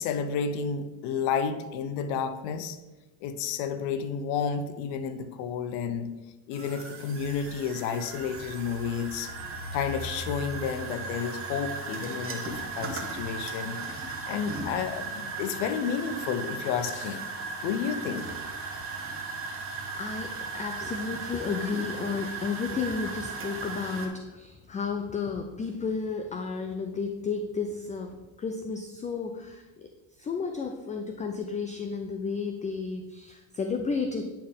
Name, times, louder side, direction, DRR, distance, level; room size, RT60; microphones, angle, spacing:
voice 1, 0.0-2.8 3.2-6.1 6.5-9.3 9.7-17.2 17.6-18.3, left 6 dB, 85° left, 11 dB, 0.8 m, -31 dB
sound 1, 6.5-24.1, right 4 dB, 30° right, 1.2 m, -37 dB
voice 2, 19.8-34.2, left 5 dB, 20° left, 5 dB, 0.3 m, -32 dB
9.3 x 4.4 x 3.6 m, 1.1 s
supercardioid pair, 110°, 44 cm